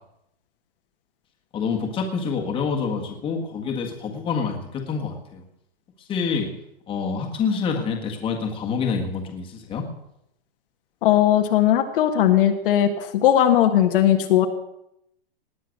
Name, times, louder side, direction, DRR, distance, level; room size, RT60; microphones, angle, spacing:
voice 1, 1.5-5.4 6.0-6.5 6.9-9.9, left 5 dB, 15° left, 1 dB, 1.7 m, -27 dB
voice 2, 11.0-14.5, left 11 dB, 60° left, 5 dB, 1.5 m, -18 dB
19.0 x 8.0 x 6.6 m, 0.80 s
supercardioid pair, 160°, 31 cm